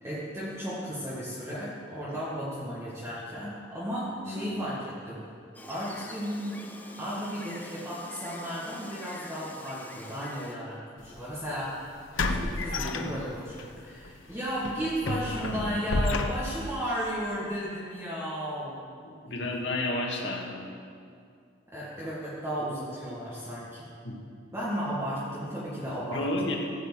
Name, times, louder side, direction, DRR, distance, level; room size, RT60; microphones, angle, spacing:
voice 1, 0.0-5.2 5.6-6.6 7.0-11.8 12.4-18.8 19.3-19.6 21.7-23.9 24.5-26.2, equal, 15° right, -9 dB, 1.8 m, -34 dB
voice 2, 4.2-4.5 19.0-20.5 24.0-24.2 26.1-26.6, left 2 dB, 65° left, -1 dB, 2.0 m, -31 dB
Gull seagull, 5.5-10.5, left 1 dB, 10° left, 0.7 m, -45 dB
sound 1, 11.0-11.2 12.2-13.6 14.0-14.2 14.6-16.7, left 2 dB, 85° left, 0.8 m, -30 dB
15.0 x 5.0 x 8.2 m, 2.3 s
head